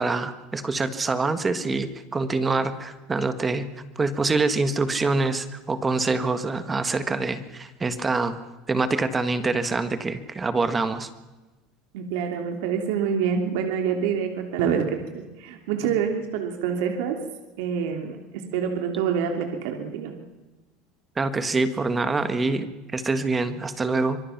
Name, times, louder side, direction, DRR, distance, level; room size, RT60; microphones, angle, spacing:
voice 1, 0.0-3.7 3.9-8.4 8.7-11.1 21.2-24.2, right 3 dB, 15° right, 11 dB, 1.5 m, -25 dB
voice 2, 11.9-17.2 17.6-20.1, right 7 dB, 75° right, 4 dB, 3.0 m, -26 dB
25.5 x 23.0 x 6.0 m, 1.1 s
cardioid pair, 150°, 0 cm